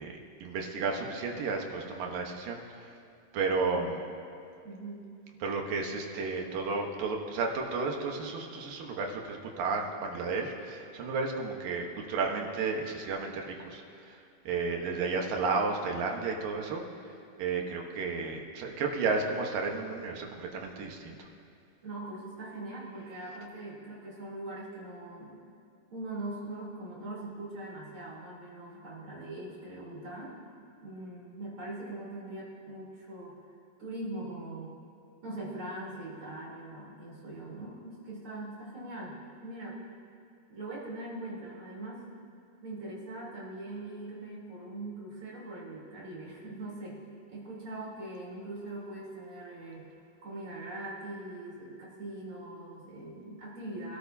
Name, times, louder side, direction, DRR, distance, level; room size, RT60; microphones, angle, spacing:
voice 1, 0.0-2.9 3.3-4.0 5.4-14.2 14.5-21.3, right 4 dB, 75° right, 1 dB, 2.9 m, -33 dB
voice 2, 4.6-5.1 21.8-25.4 25.9-33.4 33.8-34.8 35.2-39.8 40.5-42.0 42.6-47.0 47.3-49.9 50.2-54.0, right 2 dB, 35° right, -6 dB, 4.1 m, -41 dB
24.5 x 13.0 x 2.8 m, 2.4 s
omnidirectional pair, 4.1 m